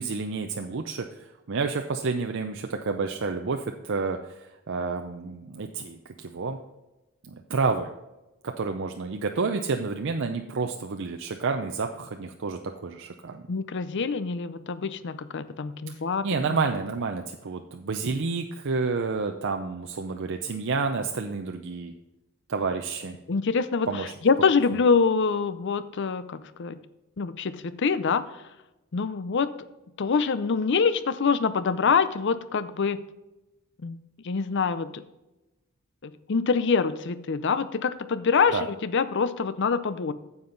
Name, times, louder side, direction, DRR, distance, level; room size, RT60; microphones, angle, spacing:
voice 1, 0.0-6.6 7.3-7.9 8.4-13.4 16.2-21.9 22.5-23.1 23.9-24.1 38.5-38.7, right 4 dB, 60° right, 5 dB, 0.6 m, -29 dB
voice 2, 13.5-16.3 23.3-23.9 24.2-26.8 27.2-28.2 28.9-29.5 30.0-33.0 33.8-34.0 34.2-35.0 36.0-40.1, left 5 dB, 55° left, 14 dB, 0.5 m, -25 dB
9.5 x 7.3 x 3.9 m, 1.0 s
head